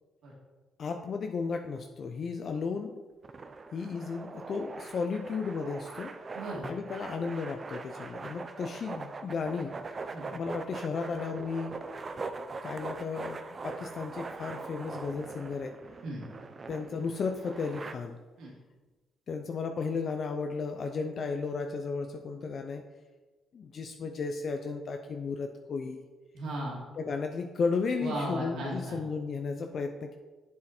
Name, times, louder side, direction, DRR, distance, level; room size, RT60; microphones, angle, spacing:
voice 1, 0.8-3.0 3.7-6.1 6.6-9.7 10.3-11.8 12.6-15.7 16.7-18.2 19.3-22.8 23.5-26.0 27.0-30.2, left 4 dB, 50° left, 5 dB, 0.6 m, -34 dB
sound 1, 3.2-17.9, right 4 dB, 35° right, 0.6 m, -42 dB
voice 2, 6.3-6.7 10.1-10.3 16.0-16.2 18.4-18.5 26.3-26.8 28.0-29.0, right 1 dB, 80° right, -3 dB, 2.7 m, -36 dB
7.5 x 7.2 x 4.4 m, 1.3 s
cardioid pair, 90°, 0 cm